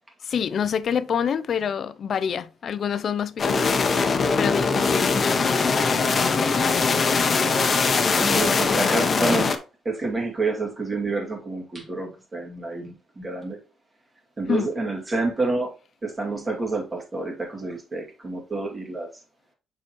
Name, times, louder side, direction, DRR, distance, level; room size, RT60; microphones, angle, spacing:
voice 1, 0.2-7.0 14.5-14.7, left 7 dB, 55° left, 0.4 m, -28 dB
sound 1, 3.4-9.6, left 4 dB, 40° left, 0.8 m, -21 dB
voice 2, 8.2-9.5 9.8-13.6 14.4-15.7 16.0-19.1, right 3 dB, 25° right, 2.3 m, -28 dB
6.8 x 4.8 x 3.0 m
cardioid pair, 90°, 0 cm